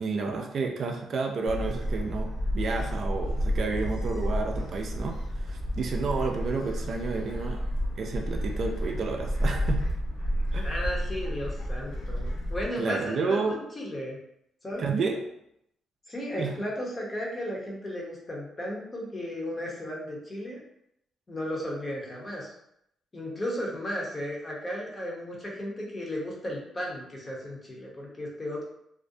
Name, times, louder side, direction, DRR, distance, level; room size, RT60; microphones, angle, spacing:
voice 1, 0.0-7.6 8.0-9.8 10.5-10.7 12.8-13.6 14.8-15.2 16.4-16.5, right 4 dB, 55° right, 3 dB, 0.3 m, -30 dB
Gull seagull, 1.5-12.7, equal, 80° left, 0.7 m, -30 dB
voice 2, 10.6-14.2 14.6-14.9 16.1-20.6 21.3-22.5 23.1-28.6, equal, 30° left, -2 dB, 0.8 m, -35 dB
2.4 x 2.1 x 2.6 m, 0.76 s
cardioid pair, 90°, 0 cm